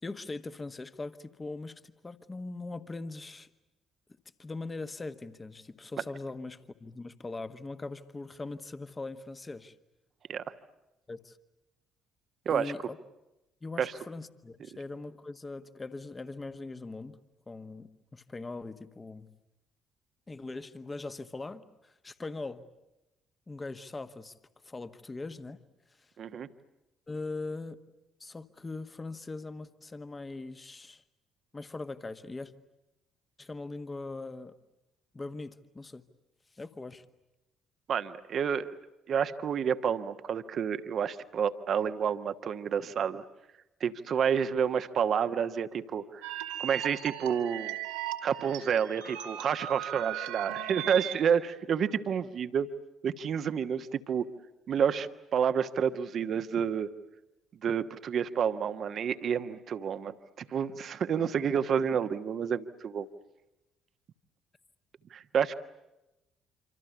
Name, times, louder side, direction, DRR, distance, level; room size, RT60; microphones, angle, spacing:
voice 1, 0.0-3.5 4.4-9.7 11.1-11.4 12.5-13.0 13.6-17.2 17.5-19.3 20.3-22.6 23.5-24.3 24.6-25.6 26.0-26.1 27.1-27.8 28.2-31.0 31.5-32.5 33.4-34.5 35.1-36.0 36.5-37.1, left 3 dB, 25° left, 11 dB, 1.6 m, -41 dB
voice 2, 26.2-26.5 37.9-38.7 39.1-43.2 43.8-46.2 46.6-47.8 48.2-52.7 53.0-54.3 54.7-56.9 57.6-63.1 65.1-65.5, right 7 dB, 50° right, 10 dB, 1.3 m, -29 dB
sound 1, 46.2-51.3, right 12 dB, 70° right, 2.5 m, -37 dB
26.5 x 26.5 x 8.4 m, 0.95 s
figure-of-eight pair, 45°, 0 cm